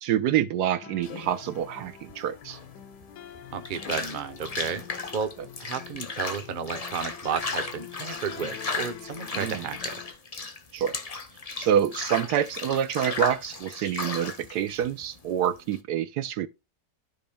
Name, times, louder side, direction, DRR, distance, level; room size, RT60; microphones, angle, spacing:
voice 1, 0.0-2.6 9.3-9.6 10.7-11.0 11.6-16.5, right 10 dB, 75° right, 1.2 m, -27 dB
sound 1, 0.8-10.1, left 9 dB, 75° left, 1.4 m, -46 dB
sound 2, 1.0-15.8, left 3 dB, 30° left, 0.7 m, -36 dB
voice 2, 3.5-4.8 5.1-5.3 5.6-10.0, right 7 dB, 40° right, 0.8 m, -32 dB
13.0 x 5.1 x 2.2 m
omnidirectional pair, 1.8 m